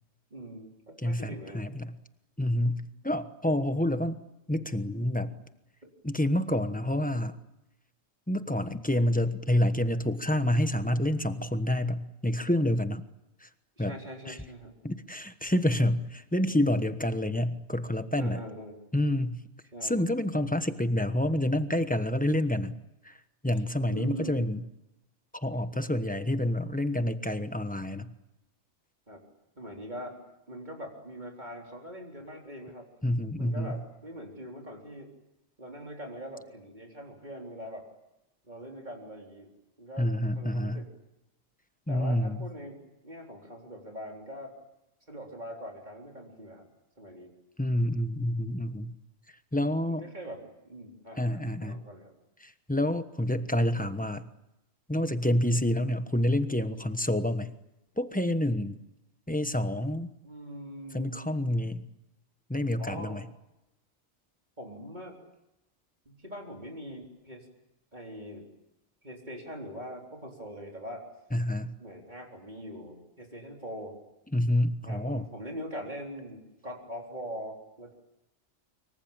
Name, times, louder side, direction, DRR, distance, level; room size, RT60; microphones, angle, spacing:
voice 1, 0.3-1.6 13.8-14.7 18.2-18.8 19.7-20.0 23.9-24.4 29.1-29.2 29.6-30.2 30.5-32.9 33.4-35.1 35.6-37.9 38.4-39.5 39.8-40.9 41.9-44.6 45.1-46.7 47.0-47.3 49.9-52.1 60.2-61.4 62.8-63.2 64.6-65.2 66.1-67.5 67.9-68.5 69.0-71.0 71.8-74.0 74.8-77.9, equal, 35° right, 0 dB, 4.1 m, -42 dB
voice 2, 1.0-1.9 2.4-4.2 4.5-5.4 6.0-7.4 8.3-13.0 13.4-13.5 13.8-13.9 14.3-14.4 14.8-18.4 18.9-19.4 19.8-22.8 23.0-23.2 23.4-24.6 25.3-28.1 33.0-33.8 40.0-40.8 41.9-42.5 47.6-48.9 49.5-50.1 51.2-51.8 52.4-54.3 54.9-57.5 58.0-58.8 59.3-60.1 60.9-61.9 62.5-63.3 71.3-71.7 74.3-75.2, left 1 dB, 5° left, 10 dB, 1.1 m, -28 dB
25.0 x 23.5 x 8.9 m, 0.94 s
omnidirectional pair, 1.4 m